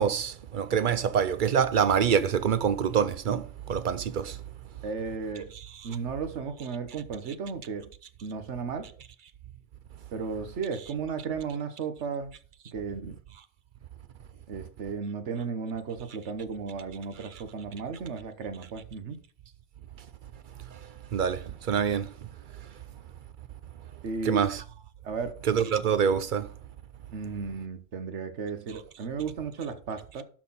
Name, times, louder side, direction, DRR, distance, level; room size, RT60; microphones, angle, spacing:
voice 1, 0.0-4.4 21.1-22.1 24.3-24.6 25.5-26.5, right 7 dB, 55° right, 0.6 m, -25 dB
voice 2, 4.8-5.5 5.8-7.9 8.2-8.9 10.1-12.4 12.7-13.2 14.5-19.2 24.0-24.5 25.0-25.4 27.1-30.2, right 5 dB, 75° right, 1.4 m, -34 dB
12.0 x 4.2 x 4.0 m
omnidirectional pair, 1.2 m